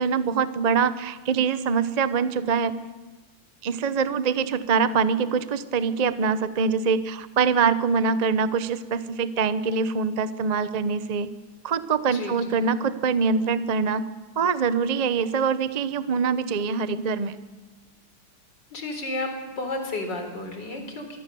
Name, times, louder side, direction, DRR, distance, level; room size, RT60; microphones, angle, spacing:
voice 1, 0.0-2.8 3.6-11.3 11.6-14.1 14.4-17.4, right 5 dB, 75° right, 12 dB, 0.3 m, -24 dB
voice 2, 12.0-12.6 18.7-19.3 19.6-21.2, left 2 dB, 55° left, 5 dB, 4.5 m, -32 dB
24.5 x 23.5 x 6.9 m, 1.3 s
omnidirectional pair, 2.3 m